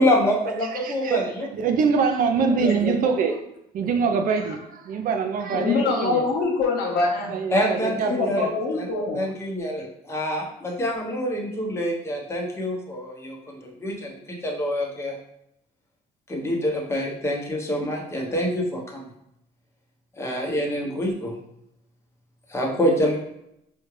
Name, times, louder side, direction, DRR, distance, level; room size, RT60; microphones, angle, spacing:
voice 1, 0.0-1.5 2.4-3.1 7.5-8.9 9.1-15.1 16.3-19.1 20.2-21.3 22.5-23.2, equal, 15° left, 1.0 m, -26 dB
voice 2, 0.8-3.4 3.7-6.2 7.3-8.5, right 5 dB, 55° right, 0.5 m, -24 dB
voice 3, 5.5-7.3 7.9-9.2, left 4 dB, 70° left, 1.1 m, -24 dB
4.2 x 2.4 x 3.2 m
cardioid pair, 110°, 17 cm